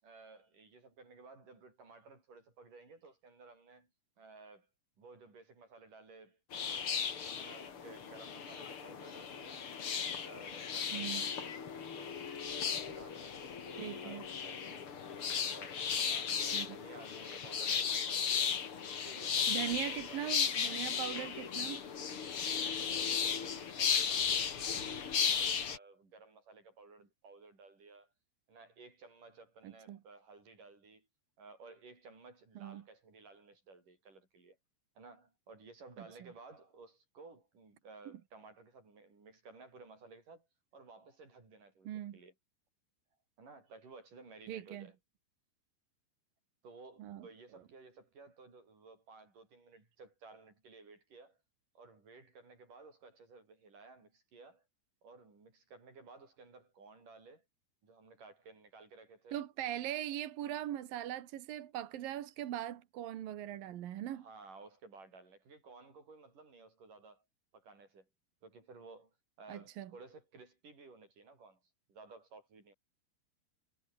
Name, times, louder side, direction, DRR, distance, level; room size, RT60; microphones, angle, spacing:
voice 1, 0.0-3.9 4.2-4.7 5.0-6.9 7.2-9.7 10.2-12.2 12.5-14.9 15.4-18.5 19.0-20.2 22.3-28.1 28.5-31.1 31.4-34.6 35.0-40.5 40.7-42.3 43.4-44.9 46.6-51.4 51.7-54.6 55.0-57.4 57.8-59.4 59.9-60.0 64.1-67.2 67.5-68.1 68.4-71.6 71.9-72.7, right 3 dB, 40° right, 9.2 m, -56 dB
sound 1, 6.5-25.8, left 7 dB, 45° left, 1.9 m, -35 dB
voice 2, 10.9-11.3 13.8-14.3 16.5-16.7 19.5-21.8 29.6-30.0 32.6-32.8 41.9-42.2 44.5-44.9 47.0-47.3 59.3-64.2 69.5-69.9, right 12 dB, 65° right, 2.5 m, -40 dB
omnidirectional pair, 5.9 m